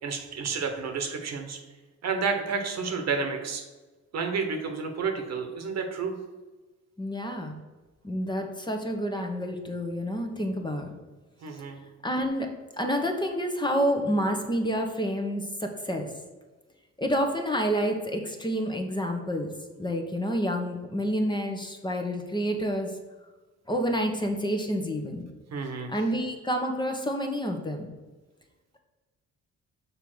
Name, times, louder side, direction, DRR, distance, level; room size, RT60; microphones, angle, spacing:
voice 1, 0.0-1.6 2.0-3.6 4.1-6.2 11.4-11.8 25.5-25.9, right 5 dB, 60° right, 5 dB, 1.2 m, -30 dB
voice 2, 7.0-7.6 8.0-10.9 12.0-12.5 12.8-16.1 17.0-19.5 19.8-22.9 23.7-25.3 25.9-27.9, equal, 15° left, 3 dB, 1.0 m, -28 dB
6.7 x 3.6 x 6.1 m, 1.2 s
cardioid pair, 90°, 30 cm